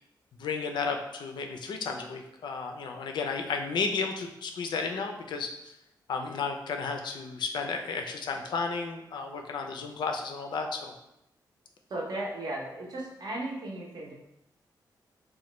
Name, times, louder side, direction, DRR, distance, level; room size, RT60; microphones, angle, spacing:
voice 1, 0.4-5.7 6.1-10.9, left 4 dB, 75° left, 4 dB, 0.4 m, -33 dB
voice 2, 11.9-14.1, right 1 dB, 60° right, -2 dB, 0.6 m, -35 dB
3.1 x 2.2 x 2.9 m, 0.86 s
wide cardioid pair, 170°, 8 cm